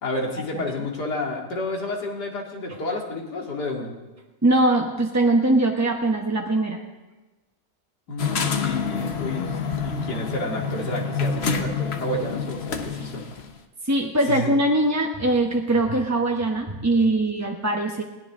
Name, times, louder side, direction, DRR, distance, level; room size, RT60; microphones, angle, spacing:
voice 1, 0.0-3.9 8.1-13.2 14.3-14.5, left 2 dB, 85° left, 0 dB, 3.0 m, -30 dB
voice 2, 4.4-6.8 13.8-18.0, right 2 dB, 15° right, 1 dB, 0.7 m, -21 dB
sound 1, 8.2-13.5, left 5 dB, 45° left, 1.1 m, -27 dB
20.5 x 17.5 x 3.7 m, 1.1 s
omnidirectional pair, 1.7 m